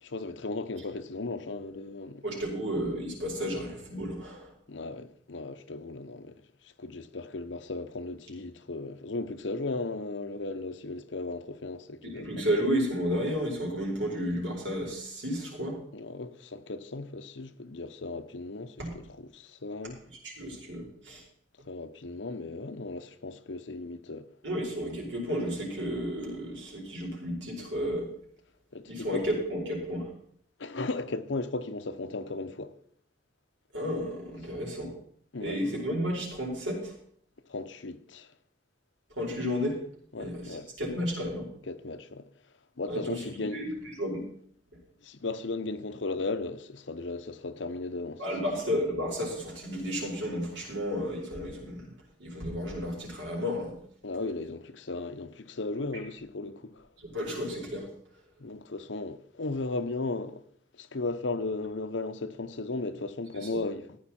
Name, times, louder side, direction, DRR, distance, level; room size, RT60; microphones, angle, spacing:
voice 1, 0.0-2.3 4.7-12.3 15.9-20.0 21.6-24.3 28.7-29.2 30.6-32.8 35.3-35.6 37.5-38.3 40.1-40.7 41.7-42.3 42.8-43.6 45.0-48.2 54.0-56.9 58.4-60.4 60.8-64.0, left 3 dB, 90° left, 0.9 m, -36 dB
voice 2, 2.2-4.5 12.0-15.8 18.8-18.9 20.2-21.2 24.4-28.1 28.9-30.1 33.7-34.9 35.4-36.9 39.1-39.8 40.2-41.4 42.8-43.2 43.5-44.2 48.2-51.9 52.2-53.7 57.0-57.9, equal, 90° right, 4.9 m, -32 dB
14.5 x 9.3 x 4.3 m
head